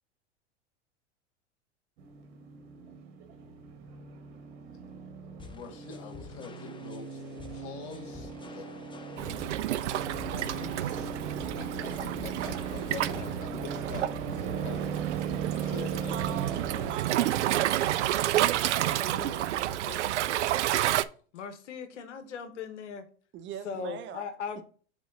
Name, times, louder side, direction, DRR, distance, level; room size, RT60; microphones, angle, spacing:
sound 1, 2.0-16.9, right 6 dB, 65° right, 1.7 m, -38 dB
voice 1, 5.3-8.7 10.3-16.5 19.0-20.4, left 5 dB, 65° left, 2.1 m, -45 dB
sound 2, 5.4-13.4, left 4 dB, 15° left, 0.7 m, -50 dB
Waves surf, 9.2-21.0, right 13 dB, 80° right, 0.5 m, -30 dB
voice 2, 16.1-16.6 16.9-18.7 23.3-24.2, right 9 dB, 35° right, 0.7 m, -42 dB
voice 3, 21.3-23.0 23.6-24.6, left 6 dB, 80° left, 1.0 m, -38 dB
4.5 x 4.2 x 5.2 m
hypercardioid pair, 100°, 35 cm